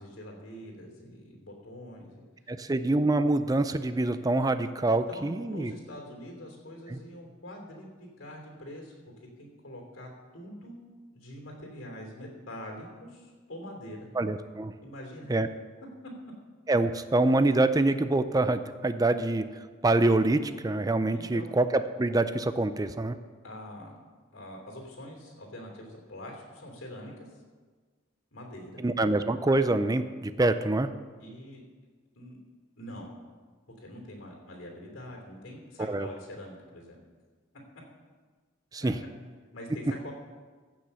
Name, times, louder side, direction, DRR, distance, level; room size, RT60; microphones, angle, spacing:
voice 1, 0.0-2.2 4.9-8.9 9.4-10.8 11.1-14.1 14.8-15.3 21.1-21.5 23.4-24.0 24.3-27.4 28.3-28.8 31.2-31.6 32.1-32.4 32.8-33.1 33.8-37.0 38.8-38.9 39.5-40.1, left 1 dB, 75° left, 0 dB, 3.1 m, -44 dB
voice 2, 2.5-5.7 6.9-7.0 14.2-14.7 15.3-15.5 16.7-19.4 19.8-23.2 28.8-30.9 35.9-36.1 38.7-39.0, right 2 dB, 20° right, 11 dB, 0.4 m, -25 dB
15.5 x 6.2 x 6.9 m, 1.5 s
head